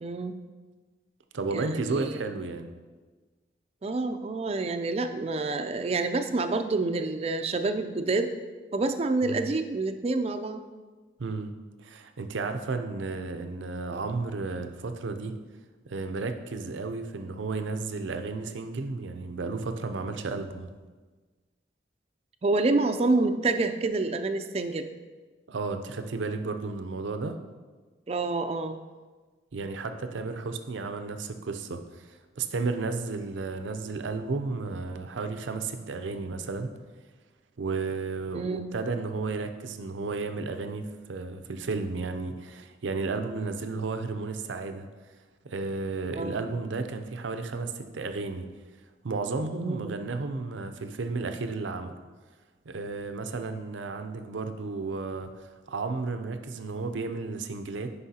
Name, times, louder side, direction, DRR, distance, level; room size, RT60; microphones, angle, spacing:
voice 1, 0.0-0.4 1.5-2.2 3.8-8.4 8.7-10.6 22.4-24.9 28.1-28.8 38.3-38.7 46.1-46.4 49.5-50.0, right 3 dB, 35° right, 9 dB, 0.3 m, -28 dB
voice 2, 1.3-2.7 9.2-9.5 11.2-11.5 11.8-15.3 15.9-20.7 25.5-27.4 29.5-36.7 37.6-44.9 45.4-48.5 49.0-51.9 52.7-57.9, right 3 dB, 90° right, 8 dB, 0.5 m, -33 dB
9.7 x 5.4 x 2.8 m, 1.3 s
head